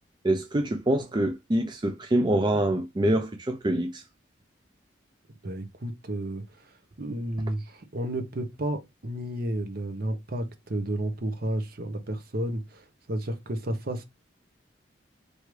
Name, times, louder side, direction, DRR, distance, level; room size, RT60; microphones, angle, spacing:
voice 1, 0.2-4.0, right 1 dB, 25° right, 0.4 m, -25 dB
voice 2, 5.4-14.0, right 1 dB, 50° right, 0.8 m, -32 dB
4.7 x 2.7 x 3.1 m
head